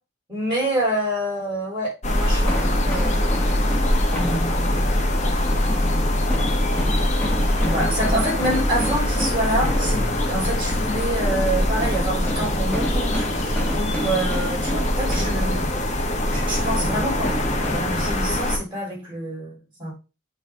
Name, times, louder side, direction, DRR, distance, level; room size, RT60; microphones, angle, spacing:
voice 1, 0.3-3.4 7.6-15.7 16.3-17.3 17.7-19.9, right 1 dB, 25° right, -4 dB, 4.1 m, -27 dB
sound 1, 2.0-18.6, left 1 dB, 40° left, 1.2 m, -23 dB
sound 2, 2.4-18.0, equal, 10° left, 1.6 m, -31 dB
9.3 x 3.3 x 3.7 m, 0.30 s
head